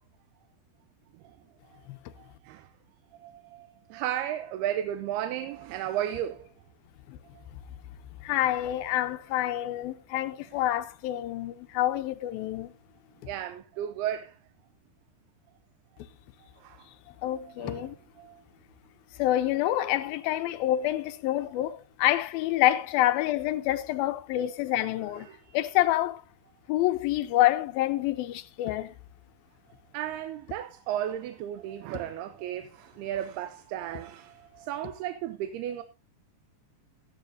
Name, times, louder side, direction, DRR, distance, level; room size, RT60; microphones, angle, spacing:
voice 1, 2.2-2.7 3.2-6.5 10.5-10.8 13.3-14.4 16.6-16.9 17.5-17.9 18.2-18.4 25.1-25.6 29.9-35.8, right 11 dB, 85° right, 2.8 m, -34 dB
voice 2, 8.2-12.7 17.2-18.0 19.2-25.3 25.5-26.2 26.7-28.9, left 14 dB, 80° left, 2.5 m, -27 dB
15.5 x 12.0 x 2.7 m
omnidirectional pair, 4.4 m